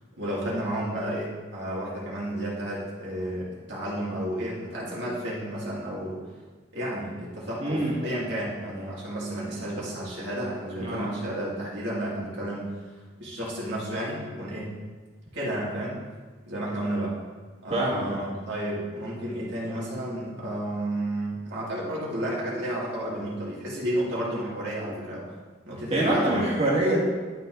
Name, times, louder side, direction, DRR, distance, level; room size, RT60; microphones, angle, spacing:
voice 1, 0.2-6.2 6.7-12.8 13.2-14.7 15.3-16.0 16.5-17.2 17.6-25.2 25.7-26.5, right 1 dB, 65° right, -6 dB, 2.5 m, -32 dB
voice 2, 7.6-8.1 10.8-11.1 17.7-18.2 25.9-27.0, right 1 dB, 35° right, -4 dB, 1.9 m, -25 dB
11.5 x 4.2 x 3.9 m, 1.4 s
head